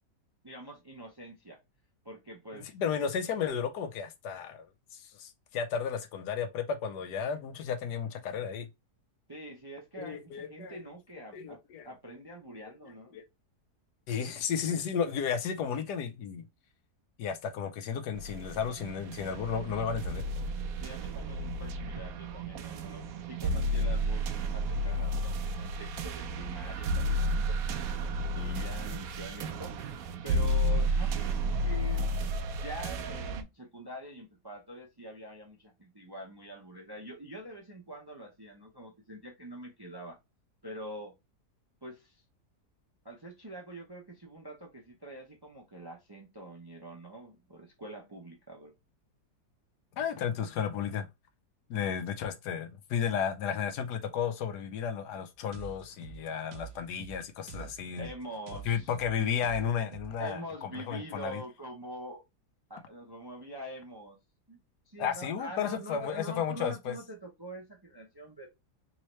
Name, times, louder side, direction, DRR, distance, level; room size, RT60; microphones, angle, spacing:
voice 1, 0.4-1.6 2.0-2.7 9.3-11.6 11.9-13.2 20.8-27.6 28.3-29.9 30.2-32.1 32.6-40.2 40.6-41.1 41.8-42.2 43.0-48.7 58.0-58.9 60.2-62.2 62.7-64.2 64.5-64.6 64.9-68.5, right 1 dB, 30° right, 0.4 m, -45 dB
voice 2, 2.5-8.7 10.0-10.8 11.3-11.9 13.1-13.2 14.1-16.4 17.2-20.2 49.9-51.1 51.7-58.1 58.6-61.4 65.0-67.0, left 7 dB, 80° left, 1.3 m, -33 dB
sound 1, 18.1-33.4, right 1 dB, 70° right, 1.0 m, -32 dB
sound 2, 55.5-60.3, right 10 dB, 90° right, 1.2 m, -47 dB
3.7 x 3.1 x 3.0 m
omnidirectional pair, 1.7 m